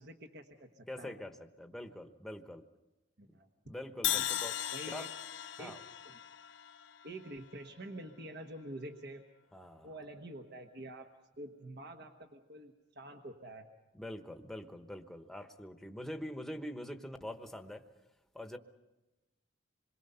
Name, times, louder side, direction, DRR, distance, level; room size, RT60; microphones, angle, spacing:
voice 1, 0.0-1.1 3.2-3.5 4.0-4.2 4.7-5.1 5.6-5.8 6.0-6.1 7.0-9.2 9.8-11.1 11.4-13.7, right 1 dB, 60° right, 4 dB, 1.3 m, -47 dB
voice 2, 0.9-2.6 3.6-4.5 4.9-5.0 5.6-5.8 9.5-9.9 13.9-17.8 18.3-18.6, left 1 dB, ahead, 6 dB, 1.0 m, -44 dB
Crash cymbal, 4.0-8.1, left 12 dB, 65° left, 0.7 m, -38 dB
27.0 x 22.5 x 5.6 m, 1.1 s
head